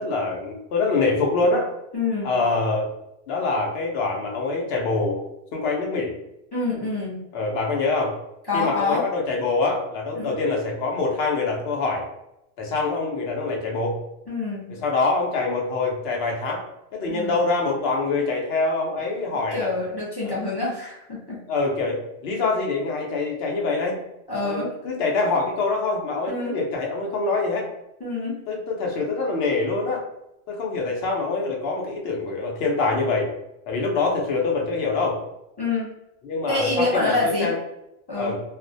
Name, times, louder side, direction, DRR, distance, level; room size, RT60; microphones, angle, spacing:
voice 1, 0.0-1.7 2.2-2.9 3.3-5.2 5.5-6.1 7.3-8.2 8.5-12.0 12.6-14.0 14.7-16.6 16.9-19.7 20.2-20.4 21.5-24.0 24.4-27.7 28.5-30.1 30.5-33.3 33.7-35.2 36.2-37.6 38.2-38.4, left 3 dB, 70° left, 0 dB, 0.8 m, -25 dB
voice 2, 1.9-2.3 6.5-7.2 8.5-9.0 10.1-10.3 14.3-14.7 17.1-17.4 19.5-21.4 24.3-24.7 26.3-26.6 28.0-28.4 35.6-35.9 36.5-37.5 38.1-38.3, left 3 dB, 30° left, -6 dB, 0.5 m, -26 dB
2.4 x 2.1 x 2.6 m, 0.85 s
omnidirectional pair, 1.1 m